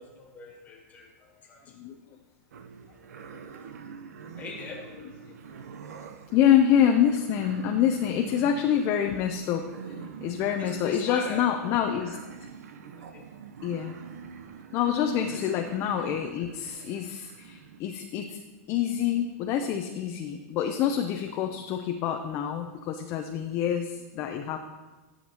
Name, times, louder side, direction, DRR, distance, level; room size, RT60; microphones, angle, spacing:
voice 1, 0.0-1.7 4.4-4.8 10.6-11.4 13.1-13.3 15.2-15.4, left 4 dB, 20° left, 0 dB, 1.8 m, -40 dB
sound 1, 2.5-17.8, right 6 dB, 85° right, 0.7 m, -45 dB
voice 2, 6.3-12.2 13.6-14.0 14.7-18.4 18.7-24.6, left 9 dB, 35° left, 5 dB, 0.5 m, -26 dB
12.0 x 7.2 x 2.9 m, 1.3 s
hypercardioid pair, 145°, 8 cm